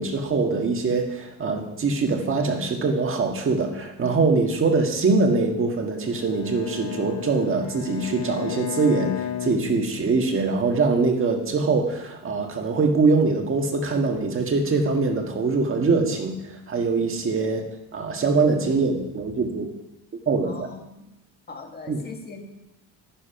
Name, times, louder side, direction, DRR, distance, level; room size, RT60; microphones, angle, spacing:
voice 1, 0.0-17.6 17.9-19.7 20.3-20.7 21.9-22.0, right 4 dB, 30° right, 3 dB, 1.6 m, -23 dB
Bowed string instrument, 6.0-10.4, left 11 dB, 80° left, 2.2 m, -34 dB
voice 2, 20.4-21.1 21.5-22.4, left 3 dB, 25° left, 3 dB, 1.7 m, -41 dB
12.5 x 10.5 x 5.8 m, 0.91 s
cardioid pair, 165°, 40 cm